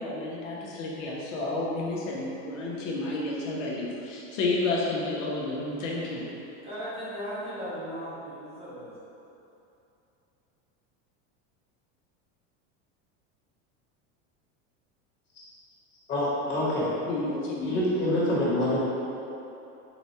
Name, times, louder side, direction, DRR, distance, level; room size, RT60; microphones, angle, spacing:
voice 1, 0.0-6.2 17.0-17.8, left 2 dB, 90° left, -4 dB, 1.0 m, -31 dB
voice 2, 6.6-8.9, equal, 15° right, -11 dB, 0.7 m, -37 dB
voice 3, 16.1-16.8 17.6-18.8, left 1 dB, 30° left, -8 dB, 1.3 m, -26 dB
4.1 x 2.3 x 4.3 m, 2.8 s
supercardioid pair, 150°, 36 cm